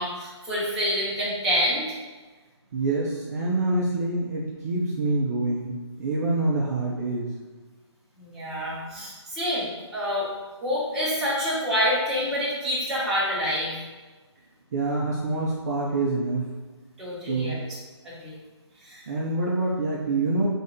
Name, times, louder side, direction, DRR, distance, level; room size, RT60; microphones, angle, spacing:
voice 1, 0.0-2.0 8.2-9.7 9.9-10.2 10.6-13.7 17.0-17.6 18.0-18.3 18.8-19.0, equal, 5° right, -11 dB, 1.2 m, -27 dB
voice 2, 2.7-7.3 14.7-16.5 17.3-17.6 19.1-20.5, right 2 dB, 35° right, -4 dB, 0.7 m, -26 dB
3.5 x 3.4 x 4.1 m, 1.3 s
figure-of-eight pair, 150°, 15 cm